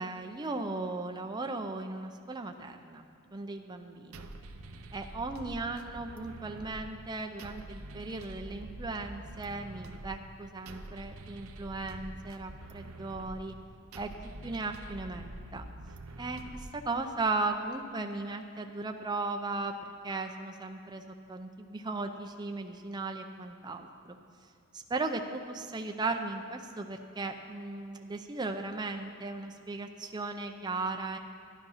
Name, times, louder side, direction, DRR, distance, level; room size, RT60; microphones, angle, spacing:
voice 1, 0.0-3.1 3.3-4.3 4.9-13.6 14.0-14.1 14.4-15.7 16.2-19.7 20.0-21.0 21.3-24.2 24.7-31.2, right 3 dB, 20° right, 4 dB, 0.5 m, -36 dB
sound 1, 4.1-17.2, right 2 dB, 80° right, 0.8 m, -46 dB
12.5 x 11.0 x 5.6 m, 2.5 s
head